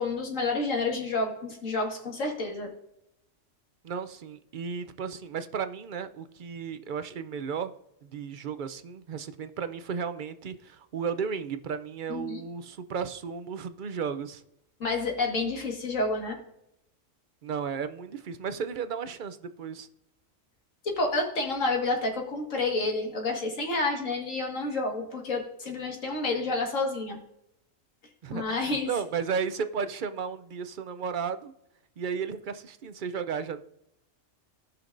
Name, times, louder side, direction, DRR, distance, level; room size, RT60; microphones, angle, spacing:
voice 1, 0.0-2.7 12.1-12.4 14.8-16.4 20.8-27.2 28.3-28.9, left 3 dB, 75° left, 2.1 m, -29 dB
voice 2, 3.8-7.7 8.0-14.4 17.4-19.9 28.2-31.5 32.0-33.6, right 6 dB, 55° right, 0.6 m, -34 dB
17.0 x 5.9 x 2.6 m
omnidirectional pair, 1.3 m